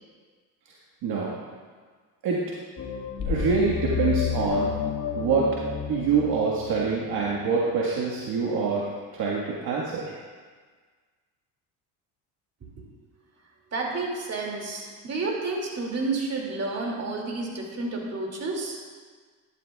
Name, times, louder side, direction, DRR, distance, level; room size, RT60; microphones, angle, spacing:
voice 1, 1.0-1.4 2.2-2.4 3.3-4.7 5.2-5.6 5.9-8.8 9.1-10.1, right 5 dB, 60° right, -4 dB, 1.6 m, -25 dB
sound 1, 2.8-7.5, left 8 dB, 45° left, 1.7 m, -30 dB
voice 2, 13.7-18.8, right 3 dB, 35° right, -1 dB, 2.5 m, -30 dB
12.0 x 11.5 x 2.4 m, 1.5 s
supercardioid pair, 95°, 42 cm